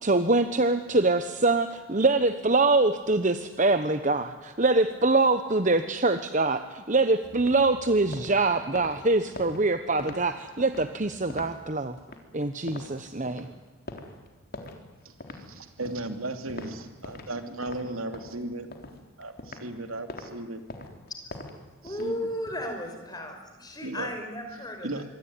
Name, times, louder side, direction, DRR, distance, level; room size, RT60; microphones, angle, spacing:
voice 1, 0.0-12.0 12.3-13.5, right 2 dB, 35° right, 9 dB, 1.1 m, -24 dB
sound 1, 7.2-17.3 17.6-19.7 20.1-20.3 20.7-22.5, left 2 dB, 45° left, 3.8 m, -43 dB
voice 2, 15.0-18.7 19.2-20.6 21.8-22.2 23.8-24.1 24.8-25.0, right 2 dB, 75° right, 7 dB, 2.6 m, -36 dB
voice 3, 21.8-25.0, equal, 20° left, 4 dB, 5.5 m, -35 dB
26.0 x 23.5 x 9.7 m, 1.3 s
head